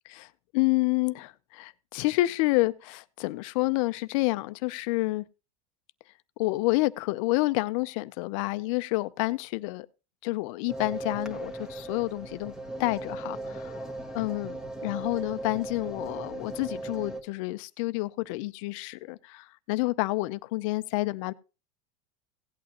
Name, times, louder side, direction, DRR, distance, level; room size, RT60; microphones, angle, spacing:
voice 1, 0.5-5.2 6.4-9.9 10.2-12.5 12.8-13.8 14.1-21.3, left 20 dB, 65° left, 0.6 m, -29 dB
sound 1, 10.7-17.2, right 2 dB, 5° right, 1.3 m, -38 dB
17.0 x 8.6 x 2.9 m
supercardioid pair, 120°, 18 cm